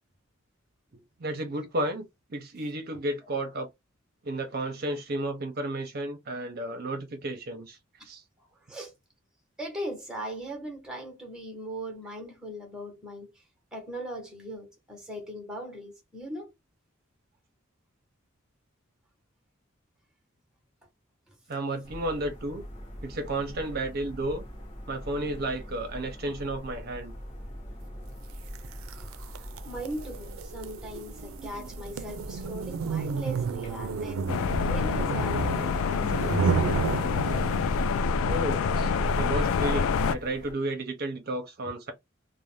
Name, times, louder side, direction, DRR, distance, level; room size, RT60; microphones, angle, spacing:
voice 1, 1.2-3.7 4.2-7.8 8.0-8.2 21.5-22.6 23.0-24.4 24.9-27.1 38.3-41.9, right 1 dB, 50° right, 0.6 m, -32 dB
voice 2, 9.6-13.3 13.7-16.5 21.3-21.4 29.0-36.5, right 1 dB, 5° right, 0.9 m, -39 dB
sound 1, 21.8-40.5, equal, 35° left, 0.9 m, -43 dB
sound 2, 28.5-37.9, right 5 dB, 90° right, 0.4 m, -32 dB
sound 3, 34.3-40.1, left 5 dB, 85° left, 0.3 m, -26 dB
2.5 x 2.0 x 3.1 m
head